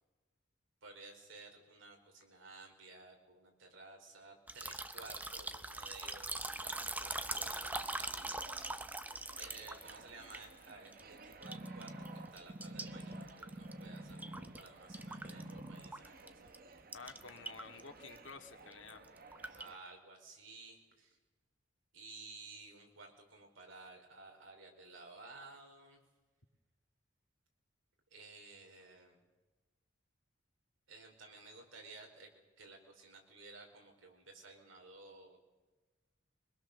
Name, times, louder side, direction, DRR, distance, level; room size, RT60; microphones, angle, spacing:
voice 1, 0.8-8.3 9.3-16.5 19.4-21.2 21.9-26.0 28.1-29.2 30.9-32.3 32.6-35.4, right 3 dB, 85° right, 2 dB, 4.8 m, -55 dB
sound 1, 4.5-11.0 11.3-12.1 12.4-14.7 14.9-16.3 16.5-16.6 16.9-17.8 18.1-18.3 18.7-19.7, right 2 dB, 10° right, 0.7 m, -42 dB
sound 2, 6.7-19.8, right 3 dB, 50° right, 1.2 m, -57 dB
sound 3, 11.4-14.6 14.9-15.9 16.5-16.6, right 1 dB, 25° right, 1.4 m, -47 dB
voice 2, 16.9-19.2, left 4 dB, 75° left, 4 dB, 2.2 m, -51 dB
24.0 x 21.0 x 6.9 m, 1.2 s
head